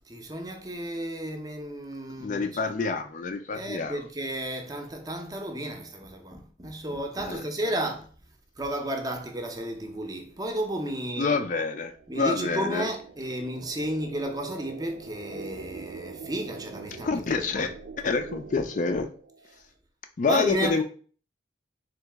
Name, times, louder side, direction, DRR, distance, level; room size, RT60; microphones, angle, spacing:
voice 1, 0.1-2.5 3.5-8.1 8.6-11.4 12.1-17.1 17.4-17.7 20.3-20.8, right 1 dB, 20° right, 0.6 m, -33 dB
voice 2, 2.2-4.1 7.2-7.5 11.2-12.9 17.0-17.7 18.0-19.1 20.2-20.8, left 4 dB, 45° left, 0.4 m, -27 dB
sound 1, 10.7-19.6, right 4 dB, 75° right, 0.5 m, -44 dB
3.9 x 2.8 x 3.4 m
head